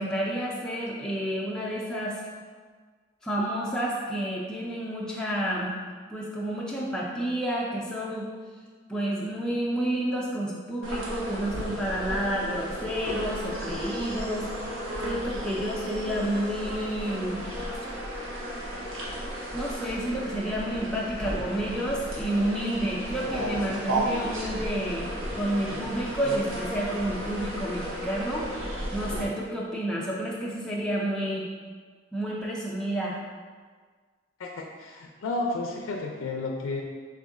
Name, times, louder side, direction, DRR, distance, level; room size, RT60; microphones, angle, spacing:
voice 1, 0.0-2.2 3.2-5.7 6.1-8.2 8.9-14.4 15.0-17.4 19.5-28.5 28.9-31.5 32.1-33.2, right 1 dB, 5° left, -5 dB, 0.4 m, -30 dB
sound 1, 10.8-29.2, right 1 dB, 85° right, 0.9 m, -34 dB
voice 2, 34.4-36.8, left 2 dB, 90° left, 1 dB, 0.4 m, -32 dB
3.5 x 3.0 x 3.6 m, 1.5 s
head